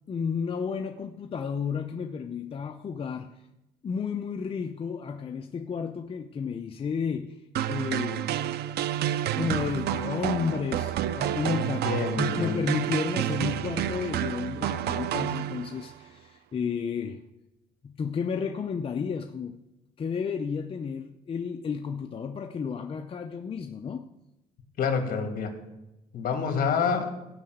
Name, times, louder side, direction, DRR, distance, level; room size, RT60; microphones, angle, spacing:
voice 1, 0.1-3.4 3.8-7.4 7.7-8.3 9.1-11.9 12.2-17.2 17.8-19.6 20.0-24.1, left 6 dB, 35° left, 4 dB, 0.6 m, -32 dB
sound 1, 7.6-15.9, right 11 dB, 85° right, 0.6 m, -29 dB
voice 2, 11.6-12.6 24.8-25.5 26.1-27.1, left 6 dB, 60° left, 4 dB, 2.5 m, -27 dB
16.0 x 5.7 x 7.8 m, 0.95 s
cardioid pair, 135°, 16 cm